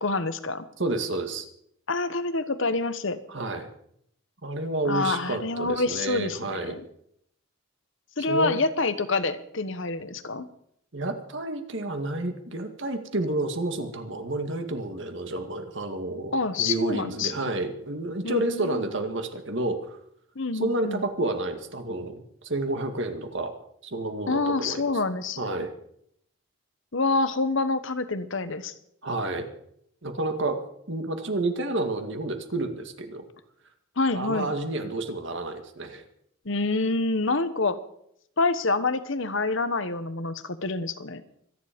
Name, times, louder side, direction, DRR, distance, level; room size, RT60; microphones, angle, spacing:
voice 1, 0.0-0.7 1.9-3.2 4.8-6.8 8.2-10.5 16.3-17.5 18.2-18.8 20.3-21.0 24.3-25.6 26.9-28.7 34.0-34.5 36.4-37.8 38.4-41.2, left 3 dB, 60° left, 11 dB, 1.1 m, -27 dB
voice 2, 0.8-1.5 3.3-3.7 4.4-6.8 8.3-8.6 10.9-20.0 20.5-23.5 23.8-25.0 25.4-25.7 29.0-29.5 30.0-30.6 30.9-33.2 34.1-36.0, right 2 dB, 55° right, 6 dB, 2.0 m, -30 dB
25.0 x 10.5 x 5.2 m, 0.70 s
head